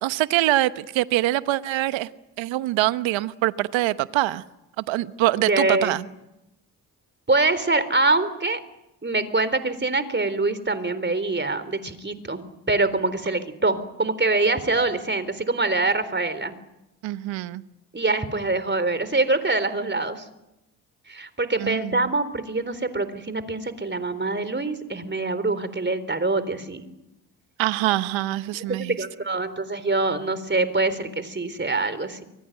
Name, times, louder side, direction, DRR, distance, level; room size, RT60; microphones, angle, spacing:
voice 1, 0.0-2.1 2.4-4.4 4.8-6.0 17.0-17.6 21.6-22.1 27.6-29.0, right 16 dB, 75° right, 1.1 m, -24 dB
voice 2, 5.4-6.0 7.3-8.6 9.0-12.4 12.7-16.6 17.9-20.3 21.1-26.9 28.7-32.2, right 3 dB, 25° right, 3.9 m, -24 dB
24.0 x 21.5 x 9.2 m
hypercardioid pair, 50°, 46 cm